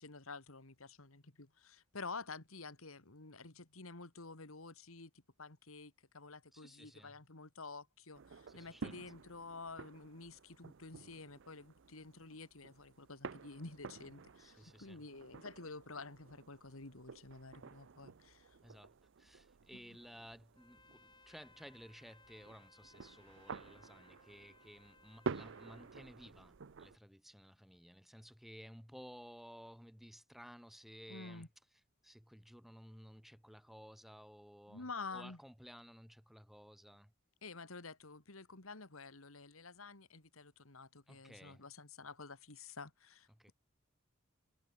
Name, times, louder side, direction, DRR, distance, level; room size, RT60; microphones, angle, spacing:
voice 1, 0.0-5.1 5.4-18.6 19.7-20.0 31.1-31.5 34.7-35.4 37.4-43.5, left 3 dB, 80° left, 2.4 m, -50 dB
voice 2, 6.5-7.2 8.5-9.0 14.4-15.0 18.6-31.5 32.0-37.1 41.1-41.6 43.3-43.5, equal, ahead, 1.7 m, -56 dB
sound 1, 8.1-27.0, right 4 dB, 65° right, 0.6 m, -50 dB
Trumpet, 20.5-26.0, left 4 dB, 20° left, 5.6 m, -66 dB
head